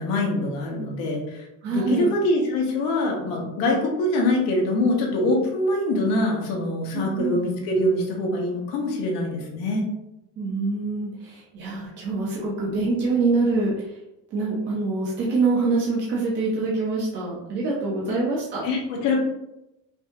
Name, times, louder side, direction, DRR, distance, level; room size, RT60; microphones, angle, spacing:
voice 1, 0.0-9.8 18.1-18.2 18.6-19.2, left 1 dB, 80° left, -1 dB, 1.3 m, -24 dB
voice 2, 1.6-2.1 6.9-7.4 10.4-13.9 14.3-18.6, right 3 dB, 30° right, -5 dB, 0.6 m, -25 dB
5.2 x 2.7 x 2.5 m, 0.88 s
cardioid pair, 175°, 39 cm